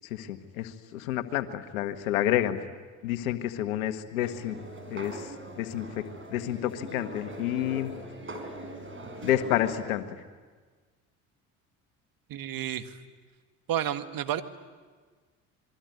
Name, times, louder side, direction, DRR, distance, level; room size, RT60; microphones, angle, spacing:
voice 1, 0.1-2.6 3.0-4.6 4.9-7.9 9.2-10.0, left 12 dB, 85° left, 9 dB, 1.7 m, -29 dB
sound 1, 4.2-9.8, right 1 dB, 30° right, 5.1 m, -42 dB
voice 2, 12.3-13.0 13.7-14.4, right 11 dB, 55° right, 9 dB, 1.8 m, -31 dB
26.5 x 22.5 x 9.5 m, 1.4 s
hypercardioid pair, 65°, 41 cm